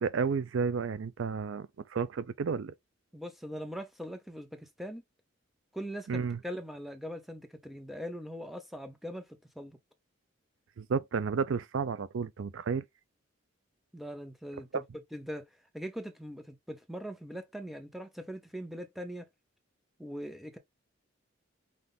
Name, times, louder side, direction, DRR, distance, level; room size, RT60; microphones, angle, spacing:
voice 1, 0.0-2.7 6.1-6.4 10.8-12.8 14.7-14.8, right 5 dB, 75° right, 0.4 m, -32 dB
voice 2, 3.1-5.0 5.7-9.3 9.6-9.8 13.9-14.8 15.1-15.5 15.7-19.3 20.0-20.6, equal, ahead, 0.7 m, -41 dB
5.8 x 2.5 x 3.5 m
head